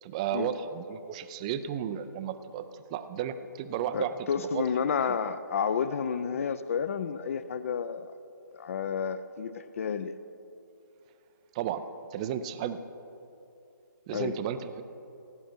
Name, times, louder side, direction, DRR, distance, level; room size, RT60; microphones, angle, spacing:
voice 1, 0.0-4.2 4.5-4.6 5.0-5.1 11.5-12.8 14.1-14.8, right 9 dB, 20° right, 12 dB, 0.4 m, -33 dB
voice 2, 3.9-8.1 8.5-10.1 14.1-14.4, left 6 dB, 40° left, 14 dB, 0.5 m, -31 dB
17.0 x 9.0 x 4.5 m, 2.8 s
figure-of-eight pair, 145°, 11 cm